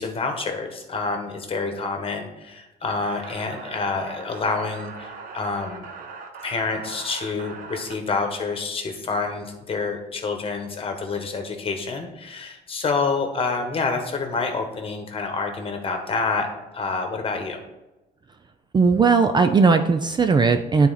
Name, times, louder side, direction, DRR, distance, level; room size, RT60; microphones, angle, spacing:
voice 1, 0.0-5.9 6.4-16.5 16.7-17.6, left 4 dB, 35° left, 4 dB, 1.4 m, -28 dB
sound 1, 3.0-7.9, right 4 dB, 55° right, 1.2 m, -39 dB
voice 2, 18.7-20.9, right 4 dB, 25° right, 7 dB, 0.4 m, -18 dB
9.6 x 4.2 x 4.2 m, 1.0 s
cardioid pair, 110°, 17 cm